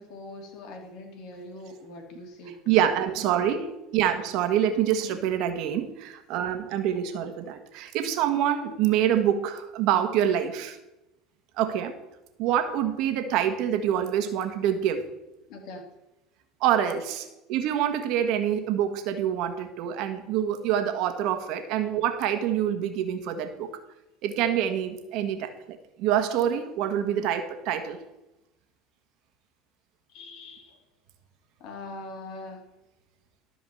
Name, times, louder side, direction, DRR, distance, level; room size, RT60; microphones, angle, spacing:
voice 1, 0.0-2.9 5.0-5.3 15.5-15.9 30.1-30.8 31.6-32.7, left 2 dB, 65° left, 2 dB, 3.0 m, -42 dB
voice 2, 2.7-10.8 11.6-11.9 12.4-15.0 16.6-23.8 24.2-28.0, right 10 dB, 65° right, 7 dB, 1.5 m, -26 dB
13.0 x 4.9 x 7.7 m, 0.94 s
supercardioid pair, 100°, 0 cm